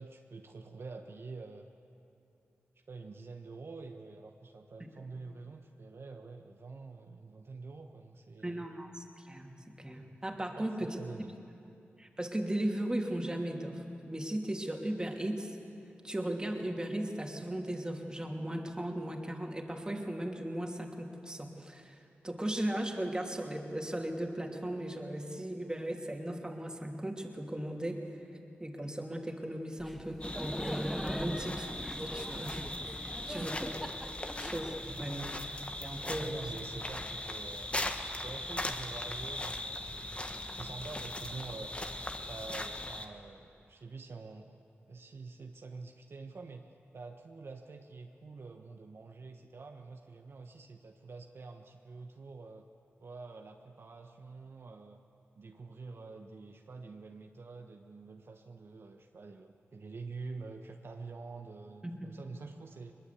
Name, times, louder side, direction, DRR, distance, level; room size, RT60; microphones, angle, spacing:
voice 1, 0.0-1.7 2.8-8.7 10.6-11.3 31.3-31.4 33.2-33.7 34.9-35.4 36.2-37.7 38.2-41.7 42.3-52.7 53.0-55.0 55.4-62.9, right 4 dB, 65° right, 4 dB, 1.2 m, -47 dB
voice 2, 8.4-9.5 9.8-11.0 12.0-15.6 16.0-28.1 28.6-31.7 32.0-33.7 34.4-34.7 35.0-35.2 35.8-36.4 61.8-62.1, right 1 dB, 20° right, 2 dB, 2.9 m, -37 dB
Laughter, 29.8-35.6, equal, ahead, 0.7 m, -42 dB
sound 1, 30.2-43.1, left 1 dB, 25° left, 1.6 m, -39 dB
21.5 x 21.5 x 8.4 m, 2.7 s
cardioid pair, 55°, 4 cm